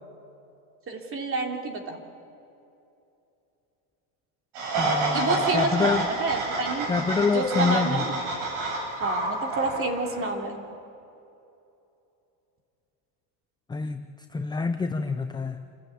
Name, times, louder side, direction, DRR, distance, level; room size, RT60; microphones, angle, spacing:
voice 1, 0.9-2.0 5.1-6.9 7.3-8.1 9.0-10.6, right 3 dB, 25° right, 3 dB, 3.2 m, -29 dB
sound 1, 4.6-10.3, right 2 dB, 60° right, 7.6 m, -29 dB
voice 2, 4.8-6.1 6.9-8.0 13.7-15.6, left 4 dB, 10° left, 8 dB, 0.5 m, -27 dB
29.0 x 13.0 x 8.6 m, 2.8 s
supercardioid pair, 120°, 47 cm